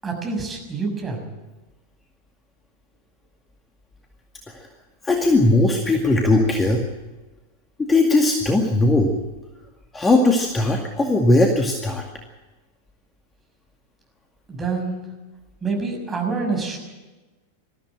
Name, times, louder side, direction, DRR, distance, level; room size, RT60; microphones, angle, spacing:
voice 1, 0.0-1.2 14.5-15.0 15.6-16.8, right 4 dB, 15° right, 1 dB, 6.5 m, -26 dB
voice 2, 5.0-6.8 7.8-9.2 9.9-12.0, left 2 dB, 15° left, 2 dB, 2.2 m, -18 dB
21.0 x 14.5 x 8.9 m, 1.2 s
figure-of-eight pair, 90°, 0 cm